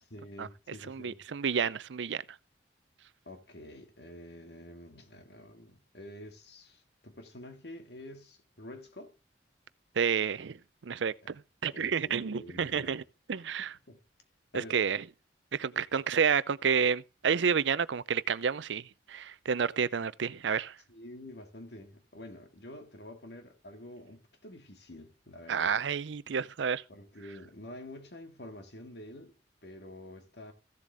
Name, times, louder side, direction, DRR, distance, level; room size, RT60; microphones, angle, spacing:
voice 1, 0.1-1.2 3.3-9.1 11.2-11.3 11.7-13.0 13.6-14.0 14.5-14.8 20.9-25.8 26.9-29.3 29.6-30.5, left 1 dB, 60° left, 2.0 m, -48 dB
voice 2, 0.9-2.2 10.0-10.6 10.8-13.0 13.3-13.7 14.5-15.0 15.5-18.8 19.1-20.8 25.5-26.8, right 6 dB, 75° right, 0.5 m, -30 dB
15.0 x 7.5 x 3.4 m
head